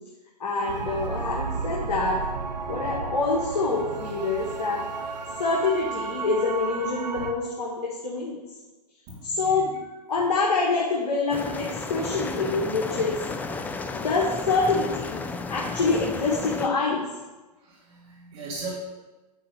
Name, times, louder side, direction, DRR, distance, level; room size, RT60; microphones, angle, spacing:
voice 1, 0.4-2.2 2.7-4.8 5.4-8.4 9.2-9.7 10.1-13.2 13.9-15.2 15.5-17.0, left 3 dB, 70° left, -3 dB, 1.7 m, -26 dB
sound 1, 0.6-7.3, right 5 dB, 80° right, 1.1 m, -33 dB
voice 2, 9.1-9.9 17.5-18.7, right 3 dB, 40° right, -6 dB, 2.5 m, -39 dB
sound 2, 11.3-16.7, left 3 dB, 10° left, 0.4 m, -33 dB
10.0 x 4.0 x 6.0 m, 1.2 s
hypercardioid pair, 120°, 21 cm